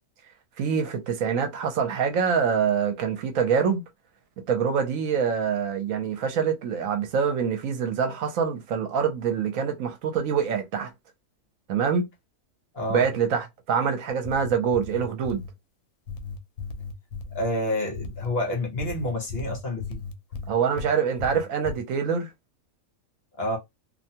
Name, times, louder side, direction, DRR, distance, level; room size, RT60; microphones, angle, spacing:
voice 1, 0.6-3.8 4.5-10.9 11.7-12.1 12.9-15.4 20.5-22.3, right 6 dB, 70° right, 1.0 m, -25 dB
sound 1, 14.1-15.5 16.1-17.5 17.9-18.3 18.8-20.9 21.2-21.8, left 4 dB, 80° left, 1.0 m, -36 dB
voice 2, 17.3-20.0 23.4-23.6, left 1 dB, 50° left, 0.9 m, -28 dB
2.6 x 2.2 x 2.7 m
omnidirectional pair, 1.5 m